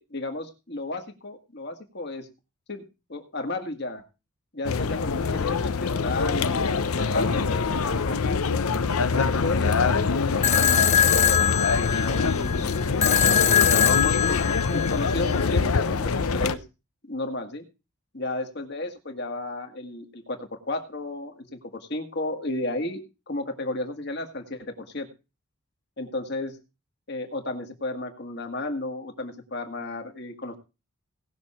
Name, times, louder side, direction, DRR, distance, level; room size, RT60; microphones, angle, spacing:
voice 1, 0.1-2.3 2.7-2.8 3.1-4.0 4.5-8.2 9.1-12.7 13.2-13.9 14.3-16.6 17.0-17.6 18.1-25.1 26.0-26.6 27.1-30.6, left 2 dB, 50° left, 4 dB, 1.9 m, -33 dB
sound 1, 4.6-16.5, left 4 dB, 90° left, 0.7 m, -24 dB
sound 2, 10.4-15.4, left 9 dB, 30° left, 0.8 m, -22 dB
18.5 x 6.4 x 4.3 m, 0.29 s
head